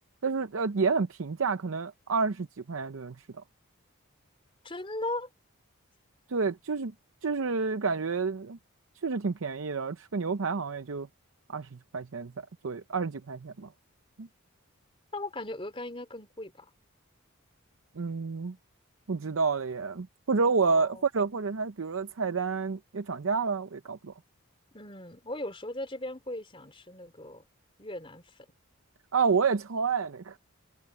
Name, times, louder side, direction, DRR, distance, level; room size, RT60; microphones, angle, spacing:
voice 1, 0.2-3.4 6.3-6.9 7.2-8.6 9.0-11.1 11.5-13.7 14.2-14.3 18.0-18.6 19.1-24.1 29.1-30.4, right 4 dB, 65° right, 0.6 m, -29 dB
voice 2, 4.6-5.3 15.1-16.7 20.6-21.0 24.7-27.5 27.8-28.5, left 1 dB, 25° left, 3.9 m, -38 dB
head